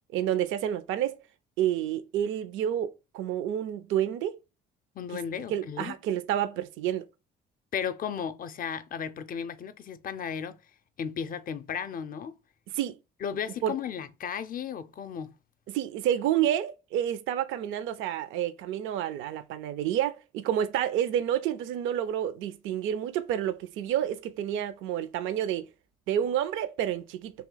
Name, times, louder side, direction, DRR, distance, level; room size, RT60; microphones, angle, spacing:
voice 1, 0.1-1.2 1.6-4.4 5.1-5.2 5.5-7.1 12.7-12.9 13.6-13.7 15.7-25.7 26.1-27.3, right 10 dB, 70° right, 0.5 m, -29 dB
voice 2, 5.0-6.0 7.7-10.6 11.0-12.3 13.2-15.3, left 7 dB, 45° left, 0.5 m, -35 dB
2.9 x 2.8 x 3.8 m
hypercardioid pair, 60°, 21 cm